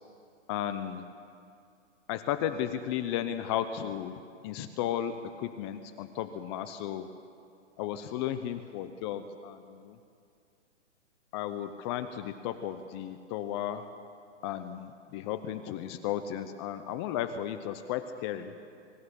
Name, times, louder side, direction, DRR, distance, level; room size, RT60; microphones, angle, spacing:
voice 1, 0.5-1.0 2.1-7.1 7.8-10.0 11.3-13.9 14.4-18.5, left 10 dB, 20° left, 10 dB, 0.7 m, -34 dB
23.5 x 14.0 x 9.8 m, 2.4 s
hypercardioid pair, 140°, 37 cm